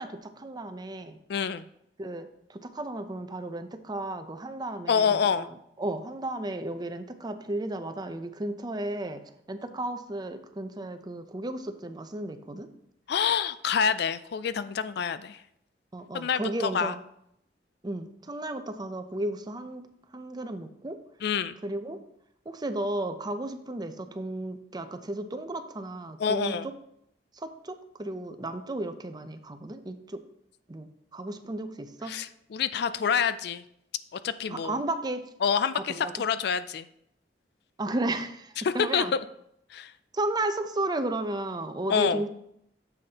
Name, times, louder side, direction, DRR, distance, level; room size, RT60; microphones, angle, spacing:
voice 1, 0.0-1.2 2.0-5.5 5.8-12.7 15.9-17.0 17.8-19.8 20.1-21.0 21.6-22.0 22.5-26.7 27.3-30.2 30.7-32.2 34.5-35.2 35.7-36.1 37.8-39.1 40.1-42.3, right 2 dB, 25° right, 9 dB, 0.6 m, -34 dB
voice 2, 1.3-1.7 4.9-5.5 13.1-15.4 16.1-16.9 21.2-21.6 26.2-26.7 32.1-33.6 34.1-34.8 35.4-36.9 38.6-39.2 39.7-39.9 41.9-42.2, left 7 dB, 65° left, 14 dB, 0.4 m, -27 dB
9.8 x 7.1 x 2.9 m, 0.75 s
head